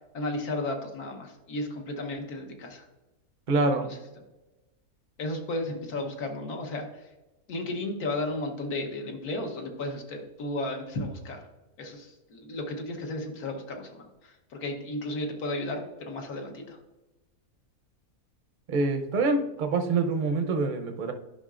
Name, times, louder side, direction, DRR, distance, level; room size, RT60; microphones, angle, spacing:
voice 1, 0.1-2.8 3.8-4.0 5.2-7.1 7.5-11.4 11.8-16.8, left 2 dB, 80° left, 3 dB, 1.5 m, -34 dB
voice 2, 3.5-3.9 18.7-21.1, right 3 dB, 50° right, 6 dB, 0.6 m, -26 dB
11.5 x 5.6 x 2.4 m, 1.1 s
omnidirectional pair, 1.6 m